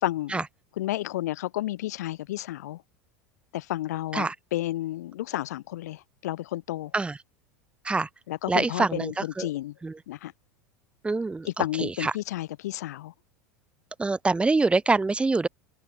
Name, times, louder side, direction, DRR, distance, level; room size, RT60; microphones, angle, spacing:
voice 1, 0.0-0.4 0.8-2.8 3.5-6.9 8.3-9.8 10.1-10.3 11.5-13.1, left 15 dB, 80° left, 3.7 m, -31 dB
voice 2, 8.5-9.5 9.8-9.9 11.0-12.1 14.0-15.5, right 3 dB, 10° right, 1.2 m, -25 dB
hypercardioid pair, 95°, 9 cm